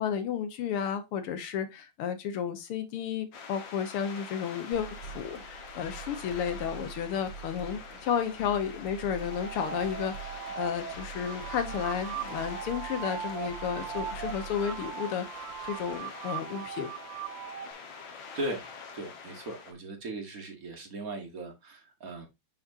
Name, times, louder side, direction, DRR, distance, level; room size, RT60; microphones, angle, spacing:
voice 1, 0.0-16.9, left 8 dB, 85° left, 2.0 m, -32 dB
sound 1, 3.3-19.7, left 5 dB, 65° left, 1.8 m, -45 dB
sound 2, 4.7-14.9, right 7 dB, 65° right, 2.4 m, -46 dB
sound 3, 9.3-17.7, right 9 dB, 90° right, 1.6 m, -39 dB
voice 2, 18.9-22.3, right 1 dB, 45° right, 1.5 m, -38 dB
6.4 x 5.9 x 2.6 m
omnidirectional pair, 2.4 m